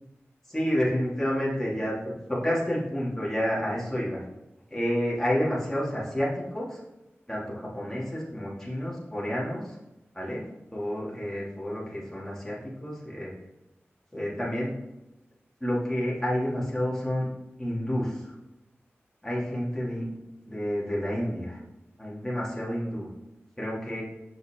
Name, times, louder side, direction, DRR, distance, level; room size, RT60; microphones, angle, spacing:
voice 1, 0.5-1.9 2.3-4.2 4.7-6.8 7.3-9.8 10.1-10.4 10.7-13.3 14.1-14.8 15.6-17.3 17.6-18.3 19.2-20.0 20.4-21.6 22.0-23.1 23.6-24.0, equal, 10° left, -6 dB, 2.7 m, -29 dB
6.7 x 6.4 x 3.8 m, 0.98 s
wide cardioid pair, 60°, 5 cm